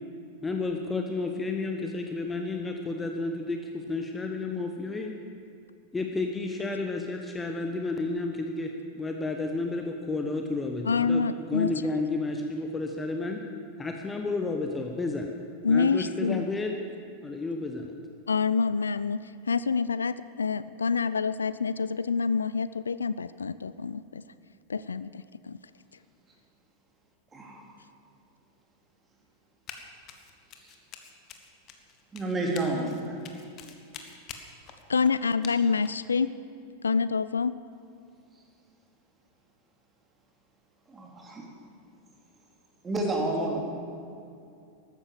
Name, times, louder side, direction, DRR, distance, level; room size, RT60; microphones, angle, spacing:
voice 1, 0.4-5.1 5.9-13.4 13.8-15.3 15.7-16.7 17.2-17.9, left 3 dB, 15° left, 3 dB, 1.1 m, -31 dB
voice 2, 10.8-11.7 15.6-16.4 18.3-19.2 19.5-24.2 24.7-25.6 34.9-36.3 36.8-37.5, left 5 dB, 75° left, 16 dB, 0.3 m, -27 dB
Run, 29.7-29.8 30.1-36.1, left 8 dB, 35° left, 1.5 m, -46 dB
voice 3, 32.1-33.2 40.9-41.4 42.8-43.6, right 2 dB, 15° right, 0 dB, 3.1 m, -30 dB
14.0 x 12.0 x 7.3 m, 2.5 s
figure-of-eight pair, 90°, 0 cm